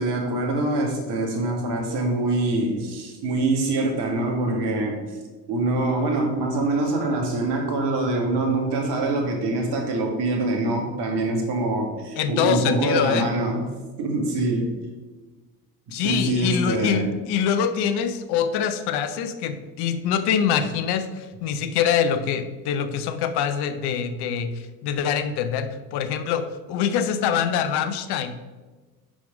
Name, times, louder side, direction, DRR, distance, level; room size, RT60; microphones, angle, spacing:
voice 1, 0.0-5.2 5.5-13.6 14.0-14.7 15.9-17.1, right 2 dB, 55° right, 2 dB, 1.9 m, -24 dB
voice 2, 12.2-13.3 15.9-28.3, left 8 dB, 50° left, 10 dB, 0.8 m, -24 dB
6.2 x 5.2 x 5.1 m, 1.3 s
hypercardioid pair, 65°, 49 cm